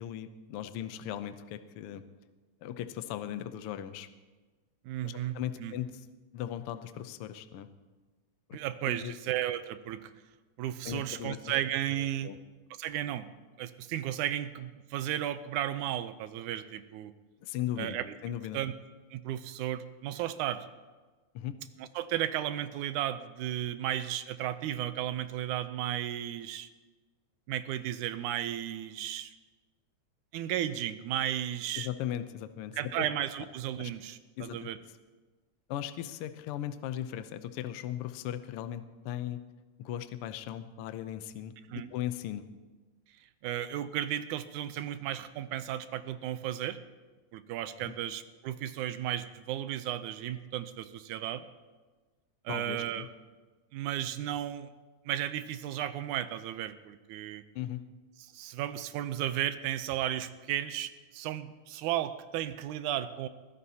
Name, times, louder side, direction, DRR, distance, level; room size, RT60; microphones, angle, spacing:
voice 1, 0.0-2.0 2.6-4.1 5.0-6.1 6.3-7.7 8.5-8.6 8.8-9.1 10.8-11.5 11.9-12.4 17.4-18.0 18.2-18.6 21.3-21.6 31.8-33.0 33.8-33.9 34.4-34.7 35.7-39.4 39.8-42.5 47.8-47.9 52.5-53.1 57.5-57.8, left 11 dB, 80° left, 10 dB, 1.3 m, -38 dB
voice 2, 4.9-5.7 8.5-10.1 10.6-12.3 12.8-13.3 13.6-17.1 17.8-18.1 18.5-18.7 19.1-20.7 21.8-26.7 27.5-29.3 30.3-31.9 32.7-34.8 41.7-41.9 43.4-46.8 47.3-51.5 52.5-53.1 53.7-54.7 55.1-57.4 58.3-63.3, right 12 dB, 90° right, 12 dB, 2.1 m, -34 dB
22.0 x 15.5 x 2.8 m, 1.3 s
omnidirectional pair, 3.4 m